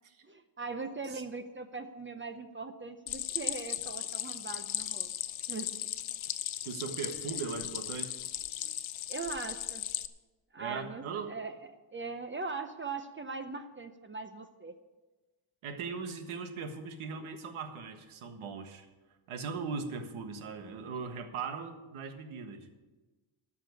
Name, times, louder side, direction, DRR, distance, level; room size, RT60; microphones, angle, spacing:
voice 1, 0.2-5.1 5.5-5.7 7.3-7.5 8.6-8.7 9.1-9.9 10.5-11.5 11.9-14.7 17.2-17.4, right 4 dB, 25° right, 8 dB, 0.6 m, -40 dB
Stream, 3.1-10.1, left 12 dB, 75° left, 0.8 m, -37 dB
voice 2, 6.6-8.2 10.6-11.4 15.6-18.9 19.3-22.7, right 5 dB, 90° right, 7 dB, 1.6 m, -39 dB
13.5 x 5.9 x 9.5 m, 1.2 s
cardioid pair, 145°, 48 cm